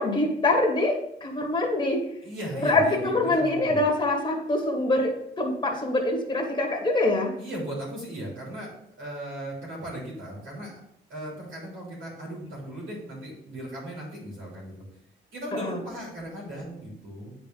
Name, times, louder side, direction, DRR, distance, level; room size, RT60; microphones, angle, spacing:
voice 1, 0.0-2.0 2.6-7.3 15.6-15.7, left 2 dB, 20° left, 1 dB, 1.6 m, -24 dB
voice 2, 2.2-3.8 7.4-8.7 9.0-10.8 11.1-14.8 15.3-17.3, right 1 dB, 85° right, -4 dB, 3.1 m, -37 dB
8.5 x 4.4 x 3.8 m, 0.75 s
cardioid pair, 90°, 20 cm